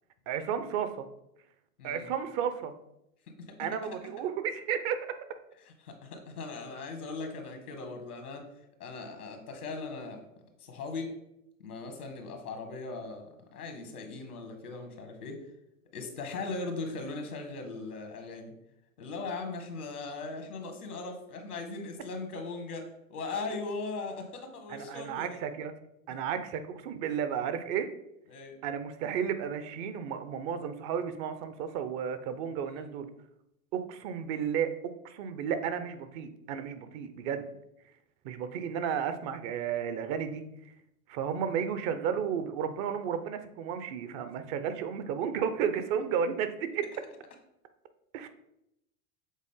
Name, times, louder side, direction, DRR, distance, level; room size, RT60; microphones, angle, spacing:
voice 1, 0.3-1.1 1.8-2.7 3.6-5.2 24.7-25.7 26.1-27.9 28.6-33.1 33.7-37.5 38.2-40.5 41.1-46.9 48.1-48.3, right 8 dB, 45° right, 10 dB, 0.7 m, -33 dB
voice 2, 1.8-2.1 3.4-3.6 5.6-8.4 8.8-10.2 10.6-11.1 11.6-15.4 15.9-18.5 19.0-25.4 28.3-28.5 32.7-32.8, left 3 dB, 85° left, 5 dB, 1.6 m, -39 dB
7.3 x 3.8 x 3.7 m, 0.81 s
hypercardioid pair, 100°, 44 cm